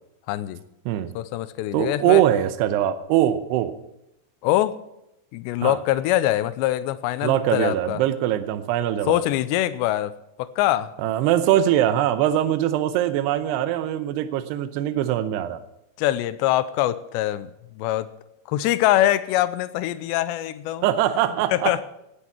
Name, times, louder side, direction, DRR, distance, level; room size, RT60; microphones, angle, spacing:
voice 1, 0.3-0.6 1.2-2.2 4.4-4.8 5.3-8.0 9.1-10.9 16.0-18.1 18.5-20.9 21.5-21.8, left 14 dB, 90° left, 14 dB, 2.9 m, -23 dB
voice 2, 1.7-3.7 5.6-5.8 7.2-9.2 11.0-15.6 20.8-21.7, right 12 dB, 80° right, 11 dB, 2.7 m, -22 dB
17.0 x 10.0 x 4.5 m, 0.84 s
omnidirectional pair, 4.9 m